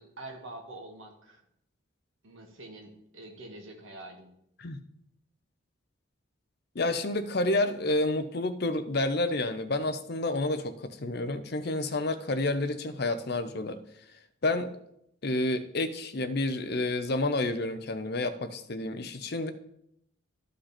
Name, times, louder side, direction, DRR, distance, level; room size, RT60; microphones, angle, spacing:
voice 1, 0.0-1.4 2.2-4.3, right 2 dB, 75° right, 2 dB, 1.8 m, -45 dB
voice 2, 6.7-13.8 14.4-14.7 15.2-19.5, left 2 dB, 50° left, 11 dB, 0.7 m, -29 dB
13.0 x 5.3 x 4.3 m, 0.75 s
head